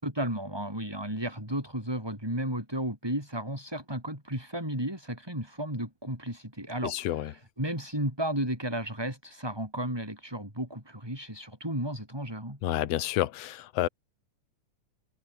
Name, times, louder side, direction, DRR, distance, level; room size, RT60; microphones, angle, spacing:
voice 1, 0.0-12.6, right 1 dB, 5° right, 7.0 m, -33 dB
voice 2, 6.8-7.3 12.6-13.9, left 14 dB, 65° left, 1.8 m, -29 dB
omnidirectional pair, 3.6 m